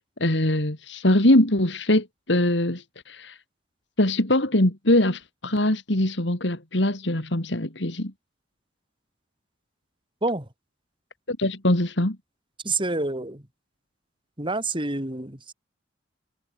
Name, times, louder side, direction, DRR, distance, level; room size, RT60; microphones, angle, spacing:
voice 1, 0.2-3.4 4.0-8.1 11.3-12.2, left 1 dB, 70° left, 3.1 m, -22 dB
voice 2, 12.6-13.4 14.4-15.5, right 2 dB, 25° right, 3.8 m, -27 dB
head